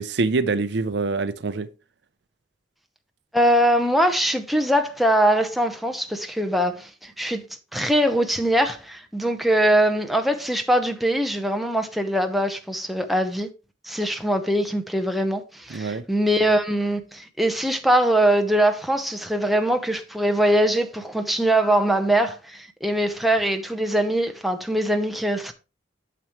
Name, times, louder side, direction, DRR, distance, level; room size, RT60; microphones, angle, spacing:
voice 1, 0.0-1.7 15.7-16.0, right 3 dB, 60° right, 0.5 m, -25 dB
voice 2, 3.3-7.4 7.7-13.5 13.8-25.5, right 1 dB, ahead, 0.7 m, -22 dB
9.1 x 6.8 x 3.1 m
head